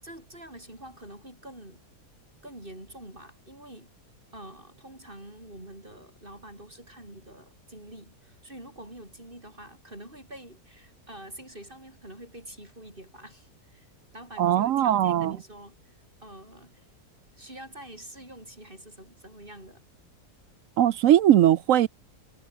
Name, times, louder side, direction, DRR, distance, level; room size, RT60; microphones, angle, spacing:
voice 1, 0.0-1.8 2.4-3.9 4.3-13.9 14.1-15.9 16.2-16.9 17.4-19.8, right 1 dB, 30° right, 6.9 m, -46 dB
voice 2, 14.4-15.4 20.8-21.9, right 11 dB, 65° right, 0.9 m, -20 dB
omnidirectional pair, 1.7 m